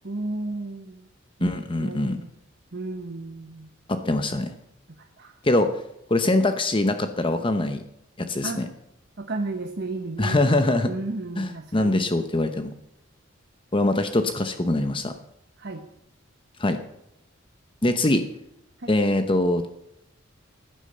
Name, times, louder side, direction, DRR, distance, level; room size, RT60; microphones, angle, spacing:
voice 1, 0.0-1.1 1.4-2.3 2.7-3.7 5.0-5.4 8.4-8.6 9.2-10.4 10.8-12.1 15.6-15.8 18.8-19.0, right 2 dB, 55° right, 4 dB, 1.1 m, -33 dB
voice 2, 1.4-2.2 3.9-4.5 5.4-5.7 6.1-7.8 8.2-8.7 10.2-10.9 11.4-12.7 13.7-15.1 16.6-16.8 17.8-18.2 18.9-19.7, left 2 dB, 25° left, 8 dB, 0.9 m, -23 dB
16.0 x 10.0 x 6.7 m, 0.82 s
head